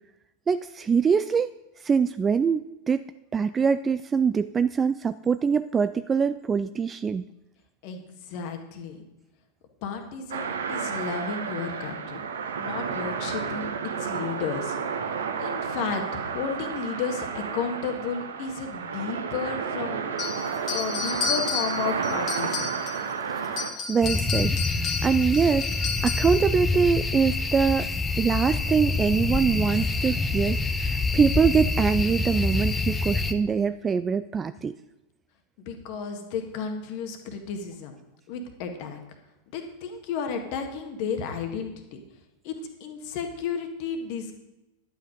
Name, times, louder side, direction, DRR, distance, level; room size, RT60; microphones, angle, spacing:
voice 1, 0.5-1.5 1.8-3.0 3.3-7.2 23.3-23.6 23.9-27.9 28.2-34.7, right 6 dB, 20° right, 12 dB, 0.3 m, -24 dB
voice 2, 7.8-9.0 9.8-12.2 12.6-13.7 14.0-14.8 15.4-20.0 20.3-22.7 35.6-37.9 38.3-39.0 39.5-42.0 42.4-42.5 42.8-44.3, left 6 dB, 45° left, 4 dB, 1.7 m, -33 dB
sound 1, 10.3-23.7, right 6 dB, 65° right, 1.0 m, -31 dB
sound 2, 20.2-23.1 23.4-26.4, left 6 dB, 30° left, 1.7 m, -32 dB
sound 3, 24.0-33.3, left 3 dB, 15° left, 0.8 m, -26 dB
11.5 x 8.4 x 5.1 m, 0.95 s
figure-of-eight pair, 90°, 0 cm